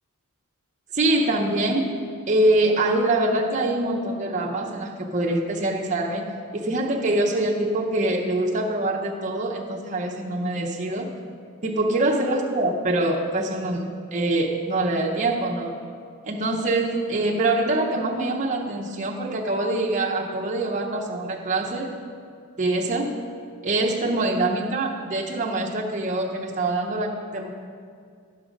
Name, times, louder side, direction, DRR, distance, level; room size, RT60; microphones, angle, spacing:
voice 1, 0.9-2.0 2.3-11.1 11.6-15.7 16.2-21.9 22.6-23.1 23.6-27.5, right 2 dB, 35° right, -2 dB, 0.7 m, -24 dB
11.0 x 6.1 x 5.1 m, 2.2 s
head